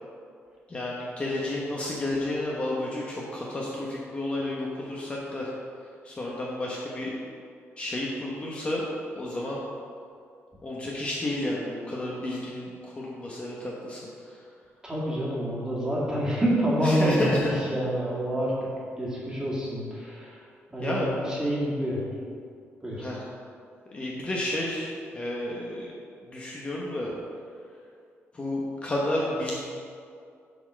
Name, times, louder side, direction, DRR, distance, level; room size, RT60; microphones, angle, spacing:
voice 1, 0.7-5.5 6.0-7.2 7.8-8.9 9.1-9.6 10.6-14.4 16.8-17.6 20.8-21.2 23.0-23.2 23.9-25.9 26.2-27.1 28.3-29.6, left 1 dB, 25° left, -4 dB, 1.0 m, -31 dB
voice 2, 14.8-18.5 19.0-20.4 20.7-22.0 22.8-23.1, equal, 15° right, -6 dB, 2.1 m, -27 dB
7.9 x 4.4 x 6.2 m, 2.3 s
cardioid pair, 140°, 5 cm